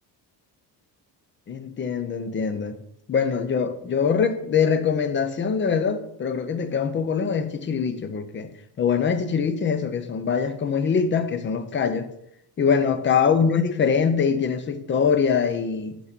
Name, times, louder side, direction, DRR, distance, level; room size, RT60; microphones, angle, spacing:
voice 1, 1.5-2.8 3.1-8.5 8.8-12.1 12.6-16.0, left 6 dB, 30° left, 0.6 m, -23 dB
6.7 x 6.2 x 6.0 m
cardioid pair, 160°, 42 cm